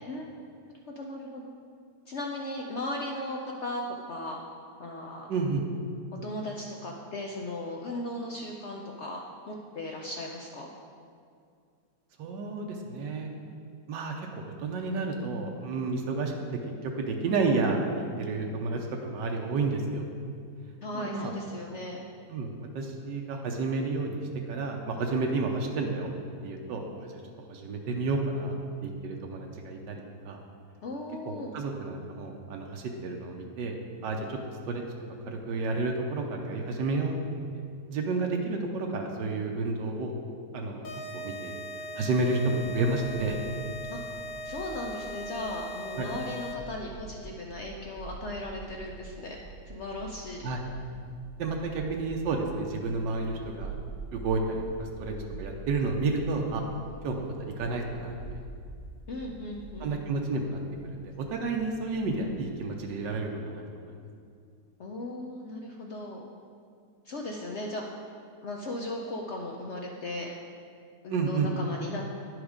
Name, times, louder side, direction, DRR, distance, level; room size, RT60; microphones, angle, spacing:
voice 1, 0.7-1.5 2.1-3.8 4.1-4.4 4.8-5.3 6.2-9.2 9.5-10.7 20.8-22.0 30.8-31.5 43.9-44.0 44.4-49.4 49.7-50.5 59.1-60.0 64.8-66.2 67.0-67.8 68.4-70.3 71.0-72.0, left 1 dB, 70° left, 0 dB, 0.6 m, -37 dB
voice 2, 5.3-5.6 12.2-13.3 13.9-16.3 16.8-20.0 20.9-21.3 22.3-24.2 24.5-26.1 26.4-27.1 27.5-28.6 28.8-30.4 31.2-33.8 34.0-34.4 34.7-34.8 35.3-37.1 37.9-40.1 40.5-40.9 41.1-41.5 42.0-43.4 46.0-46.1 50.4-50.6 51.4-53.8 54.1-56.6 57.0-58.2 59.8-63.9 71.1-71.5, right 3 dB, 90° right, 2 dB, 1.4 m, -31 dB
sound 1, 40.8-46.8, equal, 85° left, 1.7 m, -39 dB
sound 2, 42.6-62.6, right 4 dB, 65° right, 1.3 m, -46 dB
10.5 x 4.8 x 5.0 m, 2.3 s
omnidirectional pair, 1.9 m